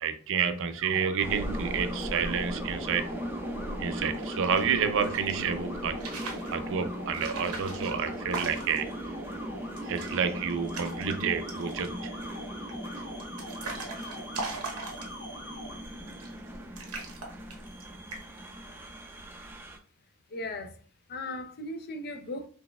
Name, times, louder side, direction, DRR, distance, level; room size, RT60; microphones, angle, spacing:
voice 1, 0.0-3.2 3.8-6.0 6.5-8.9 9.8-12.1 12.9-13.1, right 6 dB, 60° right, 0.5 m, -29 dB
sound 1, 0.8-15.7, left 1 dB, 90° left, 1.1 m, -44 dB
sound 2, 1.2-19.8, equal, 10° right, 0.5 m, -38 dB
sound 3, 4.1-5.4 5.9-6.5 7.1-8.9 9.3-9.4 9.7-10.2 10.5-11.2 11.5-12.0 12.7-15.4 16.1-16.5 16.8-17.8 18.1-18.5, right 3 dB, 90° right, 0.9 m, -40 dB
voice 2, 20.3-20.7 21.1-22.5, left 2 dB, 45° left, 0.5 m, -37 dB
4.1 x 3.3 x 2.3 m
head